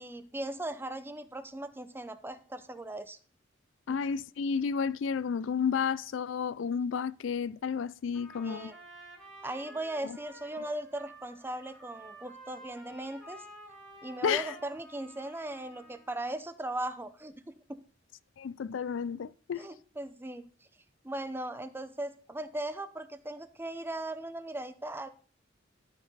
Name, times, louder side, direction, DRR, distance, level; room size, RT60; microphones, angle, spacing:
voice 1, 0.0-3.2 3.9-4.0 8.4-8.8 9.4-13.4 14.0-17.8 19.6-20.5 21.0-25.1, right 1 dB, 10° right, 0.6 m, -38 dB
voice 2, 3.9-8.7 14.2-14.5 18.4-19.7, left 6 dB, 80° left, 0.4 m, -31 dB
Trumpet, 8.1-16.2, right 1 dB, 5° left, 2.4 m, -51 dB
13.0 x 5.4 x 4.0 m
head